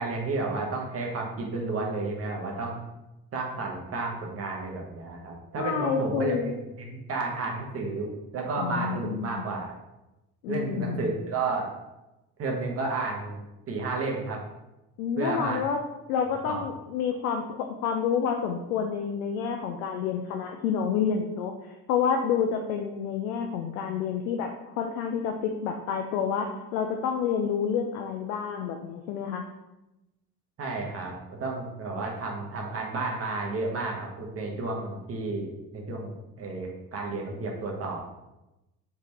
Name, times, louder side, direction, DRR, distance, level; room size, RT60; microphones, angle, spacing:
voice 1, 0.0-2.8 3.3-9.7 10.5-11.7 12.4-13.4 13.7-14.4 15.2-15.6 16.5-16.6 30.6-38.0, right 3 dB, 30° right, 0 dB, 0.9 m, -32 dB
voice 2, 5.6-6.6 8.6-9.4 10.4-11.1 15.0-15.8 16.1-24.5 24.8-29.4, left 7 dB, 60° left, 3 dB, 0.5 m, -29 dB
3.4 x 3.1 x 2.8 m, 0.97 s
figure-of-eight pair, 55°, 49 cm